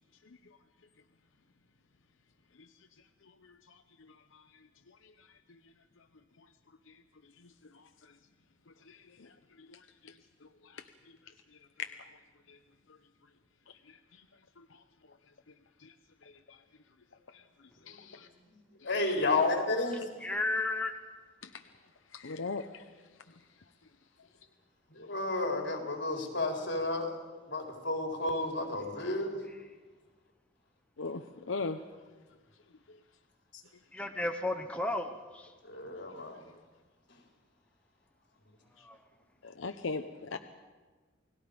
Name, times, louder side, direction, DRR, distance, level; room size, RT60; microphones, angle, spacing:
voice 1, 3.4-3.8 4.1-4.4 5.0-5.3 6.9-7.0 7.4-8.1 8.9-10.2 10.6-10.8 11.8-11.9 12.5-12.6 13.7-14.2 14.6-14.7 15.8-15.9 16.2-16.6 17.3-17.4 17.9-18.3 21.4-21.6 22.1-22.8 31.0-31.8 39.4-40.4, left 4 dB, 85° left, 7 dB, 0.8 m, -41 dB
voice 2, 18.8-20.1 24.9-27.1 27.5-29.4 35.6-36.4, left 2 dB, 60° left, 1 dB, 4.1 m, -31 dB
voice 3, 20.2-20.9 33.9-35.5 38.8-39.0, left 2 dB, 5° left, 4 dB, 1.0 m, -33 dB
29.0 x 19.0 x 5.2 m, 1.4 s
head